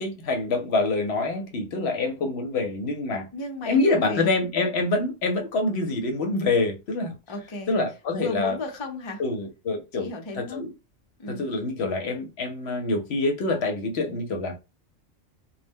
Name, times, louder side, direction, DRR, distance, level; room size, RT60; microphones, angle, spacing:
voice 1, 0.0-3.3 3.7-7.1 7.7-8.6 9.2-10.1 10.4-10.7 11.3-14.6, left 3 dB, 65° left, 0.8 m, -26 dB
voice 2, 3.3-4.3 7.3-7.7 8.1-9.2 10.0-10.6 11.2-11.4, left 2 dB, 40° left, 0.4 m, -34 dB
2.2 x 2.1 x 3.4 m
omnidirectional pair, 1.3 m